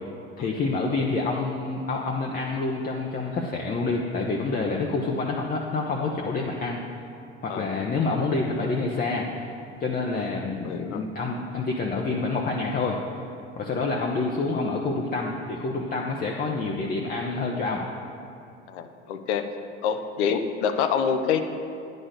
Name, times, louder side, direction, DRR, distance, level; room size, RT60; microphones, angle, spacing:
voice 1, 0.4-6.8 7.4-9.5 9.8-13.0 13.6-17.8, left 3 dB, 25° left, -1 dB, 0.8 m, -27 dB
voice 2, 7.5-7.8 10.1-10.3 10.6-11.0 18.7-19.5 19.8-21.4, left 7 dB, 65° left, 8 dB, 0.7 m, -26 dB
9.8 x 4.2 x 6.6 m, 2.6 s
hypercardioid pair, 75°, 36 cm